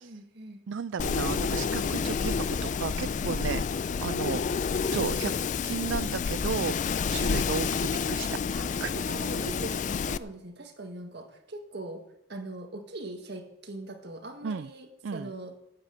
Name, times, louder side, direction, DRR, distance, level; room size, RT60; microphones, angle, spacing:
voice 1, 0.0-0.6 9.0-12.0 12.3-15.5, right 1 dB, 60° right, 4 dB, 1.8 m, -41 dB
voice 2, 0.7-4.4 4.9-5.3 5.6-8.9 14.4-14.7 15.0-15.3, right 6 dB, 75° right, 13 dB, 0.4 m, -34 dB
Wind, 1.0-10.2, left 5 dB, 40° left, 0.3 m, -29 dB
9.4 x 9.2 x 7.6 m, 0.85 s
head